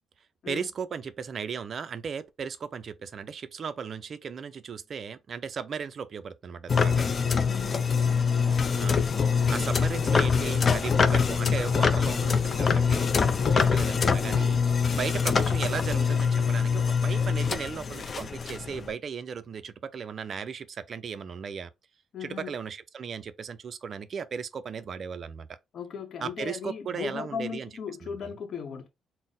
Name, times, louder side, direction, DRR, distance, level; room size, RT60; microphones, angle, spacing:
voice 1, 0.5-7.1 8.8-9.0 9.5-13.1 13.5-21.7 22.2-25.5 26.2-27.7 28.0-28.1, right 6 dB, 50° right, 0.3 m, -36 dB
sound 1, 6.7-18.9, left 6 dB, 40° left, 0.4 m, -24 dB
voice 2, 7.4-8.0 13.4-13.7 22.1-22.6 25.7-28.9, left 7 dB, 60° left, 0.8 m, -37 dB
4.0 x 2.0 x 3.7 m
cardioid pair, 90°, 0 cm